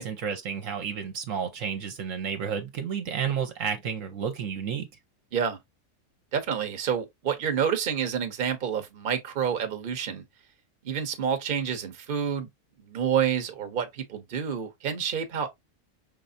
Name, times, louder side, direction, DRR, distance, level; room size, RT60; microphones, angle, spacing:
voice 1, 0.0-4.9, right 7 dB, 65° right, 1.1 m, -31 dB
voice 2, 6.3-10.2 10.8-12.5 12.9-15.5, right 8 dB, 45° right, 0.9 m, -28 dB
5.6 x 3.3 x 2.5 m
omnidirectional pair, 1.5 m